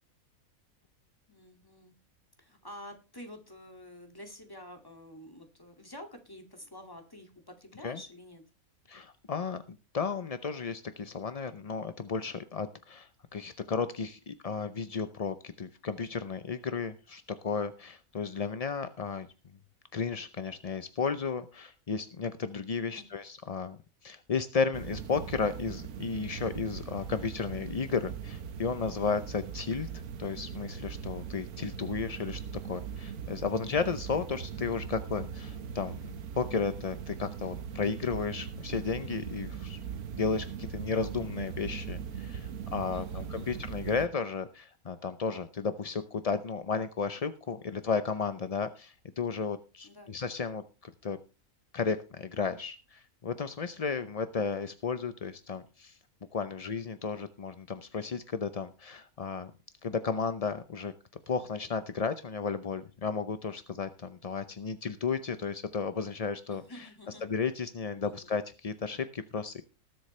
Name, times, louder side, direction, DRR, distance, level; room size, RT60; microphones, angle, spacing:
voice 1, 1.3-2.0 2.4-8.4 22.7-23.1 42.9-43.6 49.8-50.1 66.5-67.3 68.0-68.3, left 1 dB, 15° left, 4 dB, 2.2 m, -49 dB
voice 2, 8.9-9.6 9.9-19.3 19.9-32.4 32.7-39.8 40.1-51.2 51.7-56.0 56.3-59.5 59.8-60.9 61.3-66.9 67.2-69.6, left 5 dB, 40° left, 11 dB, 0.5 m, -33 dB
sound 1, 24.7-44.1, right 7 dB, 85° right, 1.5 m, -40 dB
19.5 x 7.9 x 3.2 m, 0.32 s
omnidirectional pair, 1.5 m